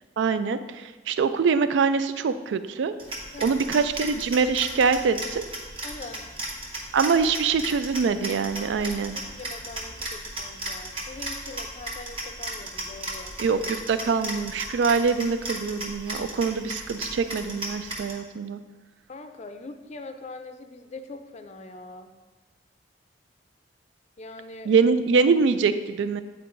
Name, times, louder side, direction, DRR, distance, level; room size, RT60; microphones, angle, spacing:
voice 1, 0.2-3.0 3.4-5.4 6.9-9.2 13.4-18.6 24.7-26.2, right 5 dB, 75° right, 12 dB, 0.3 m, -24 dB
sound 1, 3.0-18.1, right 1 dB, 30° right, 1.0 m, -36 dB
voice 2, 3.3-3.6 5.8-6.4 8.9-9.0 9.4-13.3 19.1-22.1 24.2-24.7, left 2 dB, 35° left, 7 dB, 0.4 m, -42 dB
8.5 x 4.5 x 2.6 m, 1.2 s
head